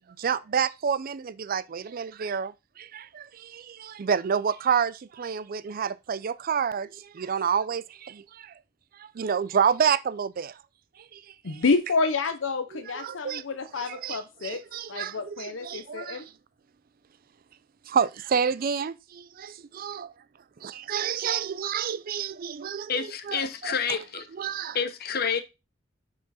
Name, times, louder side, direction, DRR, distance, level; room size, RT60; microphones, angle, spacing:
voice 1, 0.0-8.5 9.0-10.5 11.1-11.2 11.5-11.6 12.7-13.4 13.8-16.2 17.9-20.1 20.6-24.0 24.4-24.8, right 7 dB, 50° right, 0.4 m, -29 dB
voice 2, 11.4-14.6 14.9-16.3, left 4 dB, 80° left, 0.7 m, -28 dB
voice 3, 22.9-24.3 24.7-25.4, left 6 dB, 55° left, 0.9 m, -28 dB
6.0 x 4.9 x 4.2 m
head